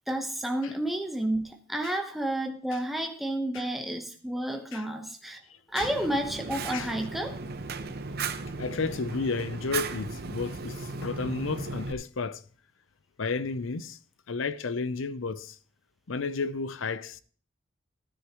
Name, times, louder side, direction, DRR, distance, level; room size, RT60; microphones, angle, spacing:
voice 1, 0.1-5.4 5.7-7.4, right 1 dB, ahead, 1.0 m, -31 dB
voice 2, 5.5-5.9 6.7-6.9 7.8-7.9 8.6-12.4 13.2-14.0 14.3-15.6 16.1-17.2, left 4 dB, 70° left, 0.6 m, -32 dB
Fire, 5.8-11.9, right 4 dB, 50° right, 0.8 m, -36 dB
16.0 x 10.0 x 3.0 m
head